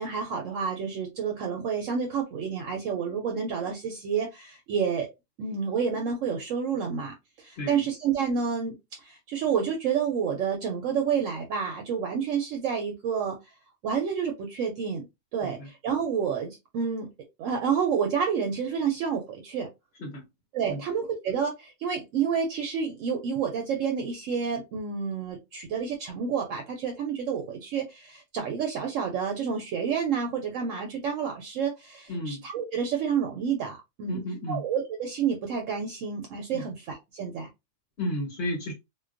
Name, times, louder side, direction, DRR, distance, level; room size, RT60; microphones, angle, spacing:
voice 1, 0.0-5.1 5.4-13.4 13.8-15.1 15.3-17.1 17.4-19.7 20.5-34.2 34.5-37.5, right 6 dB, 70° right, 0.9 m, -29 dB
voice 2, 7.6-7.9 15.4-15.7 20.0-20.2 20.7-20.8 32.1-32.5 34.1-34.6 36.5-36.7 38.0-38.7, left 1 dB, 55° left, 1.0 m, -33 dB
2.3 x 2.2 x 2.4 m
omnidirectional pair, 1.4 m